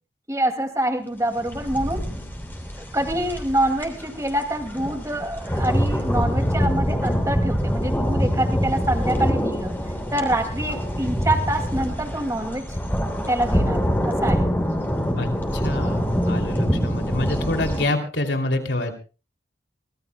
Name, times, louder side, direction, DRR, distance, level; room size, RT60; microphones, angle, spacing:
voice 1, 0.3-2.1 2.8-9.7 10.1-12.8 13.3-14.5 16.3-16.4, right 1 dB, 15° right, 5 dB, 2.2 m, -26 dB
sound 1, 1.4-17.8, equal, 10° left, 3.3 m, -25 dB
voice 2, 15.2-18.9, left 2 dB, 85° left, 4 dB, 2.8 m, -27 dB
24.5 x 20.0 x 2.2 m, 0.34 s
head